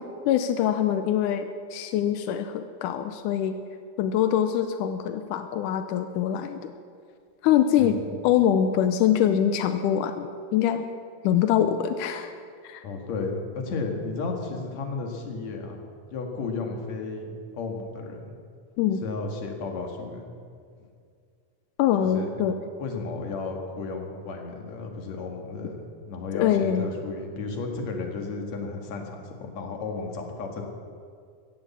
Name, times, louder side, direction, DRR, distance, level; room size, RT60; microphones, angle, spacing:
voice 1, 0.3-3.6 4.0-6.7 7.4-8.0 8.2-10.9 11.2-12.3 12.6-12.8 18.8-19.0 21.8-22.6 26.3-26.9, left 10 dB, 90° left, 8 dB, 2.2 m, -24 dB
voice 2, 7.8-8.2 12.8-15.8 16.1-18.4 19.0-20.2 22.0-22.4 22.8-30.6, left 4 dB, 65° left, 3 dB, 3.0 m, -33 dB
15.5 x 10.0 x 8.4 m, 2.2 s
omnidirectional pair, 3.5 m